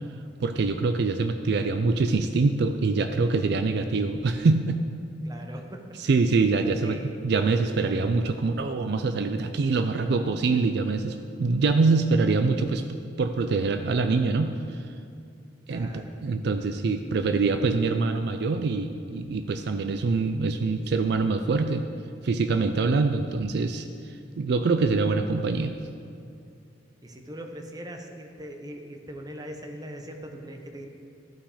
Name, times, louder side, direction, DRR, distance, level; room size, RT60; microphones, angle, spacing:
voice 1, 0.4-4.8 6.0-12.8 13.2-14.8 15.7-21.8 22.2-25.7, right 3 dB, 65° right, 8 dB, 0.4 m, -24 dB
voice 2, 5.2-5.8 6.8-7.1 15.7-16.2 16.5-16.6 27.0-30.9, equal, 20° right, 3 dB, 0.9 m, -40 dB
14.0 x 5.9 x 4.9 m, 2.4 s
head